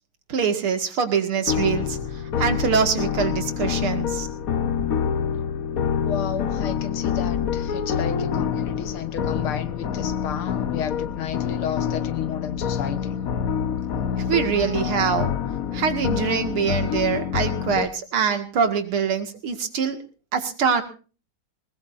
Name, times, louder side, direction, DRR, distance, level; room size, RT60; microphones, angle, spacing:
voice 1, 0.3-4.3 14.2-15.3 15.7-20.0 20.3-20.8, right 6 dB, 85° right, 7 dB, 2.9 m, -24 dB
sound 1, 1.5-17.9, left 8 dB, 55° left, 1.1 m, -26 dB
voice 2, 6.0-13.2, left 8 dB, 85° left, 11 dB, 2.2 m, -32 dB
20.5 x 19.5 x 2.6 m, 0.37 s
omnidirectional pair, 2.3 m